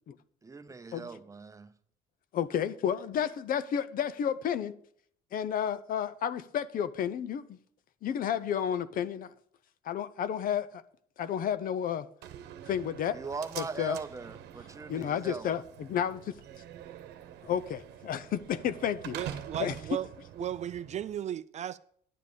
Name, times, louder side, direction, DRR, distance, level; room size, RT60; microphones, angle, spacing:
voice 1, 0.4-1.7 13.1-15.5, right 4 dB, 20° right, 0.8 m, -40 dB
voice 2, 2.3-4.8 5.3-7.6 8.0-9.3 9.8-10.8 11.2-12.1 12.7-13.2 13.6-14.0 14.9-16.3 17.4-19.2 19.6-20.0, left 9 dB, 55° left, 0.7 m, -31 dB
Slam, 12.2-21.2, right 10 dB, 75° right, 1.0 m, -46 dB
voice 3, 19.1-20.1 20.4-21.8, right 10 dB, 45° right, 0.4 m, -35 dB
11.0 x 7.5 x 5.2 m
cardioid pair, 110°, 17 cm